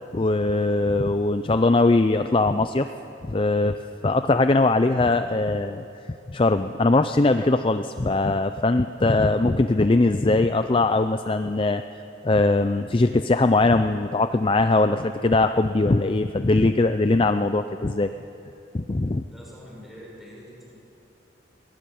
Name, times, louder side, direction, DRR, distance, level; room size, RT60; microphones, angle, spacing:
voice 1, 0.1-2.9 3.3-3.7 4.0-5.8 6.3-11.8 12.2-18.1 18.7-19.2, left 2 dB, 30° left, 9 dB, 0.5 m, -21 dB
voice 2, 19.3-20.7, equal, ahead, -4 dB, 6.2 m, -44 dB
22.0 x 18.0 x 8.7 m, 2.8 s
head